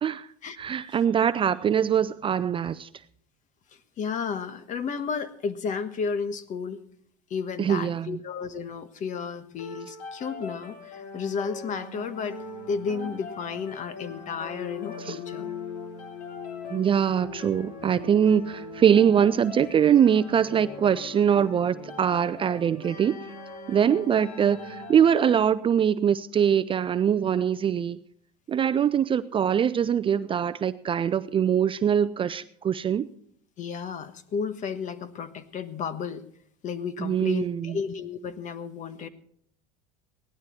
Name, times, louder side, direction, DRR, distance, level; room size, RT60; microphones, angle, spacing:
voice 1, 0.6-2.9 7.6-8.2 14.9-15.2 16.7-23.2 23.7-28.0 28.5-33.1 37.0-37.8, right 8 dB, 25° right, 0.5 m, -23 dB
voice 2, 4.0-6.8 7.3-12.4 12.7-15.5 33.6-36.2 36.6-39.1, left 6 dB, 40° left, 1.4 m, -32 dB
sound 1, 9.6-25.4, left 4 dB, 80° left, 3.0 m, -40 dB
17.5 x 12.0 x 4.4 m
supercardioid pair, 110°, 20 cm